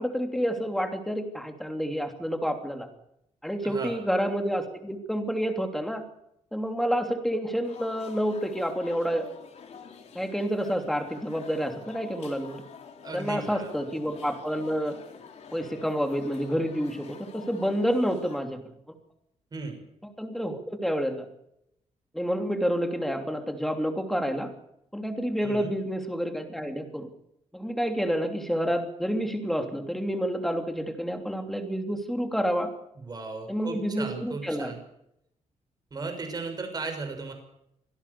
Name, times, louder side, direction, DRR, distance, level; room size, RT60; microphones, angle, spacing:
voice 1, 0.0-2.9 3.4-6.0 6.5-9.3 10.1-12.6 13.1-15.0 15.5-18.6 20.2-21.2 22.1-24.5 24.9-27.1 27.5-32.7 33.5-34.7, equal, ahead, 5 dB, 3.1 m, -29 dB
voice 2, 3.6-4.0 13.0-13.7 19.5-19.8 25.4-25.7 33.0-34.8 35.9-37.3, right 3 dB, 30° right, 6 dB, 6.3 m, -36 dB
sound 1, 7.6-18.4, left 6 dB, 65° left, 4.3 m, -47 dB
25.5 x 17.0 x 7.0 m, 0.77 s
wide cardioid pair, 150°, 12 cm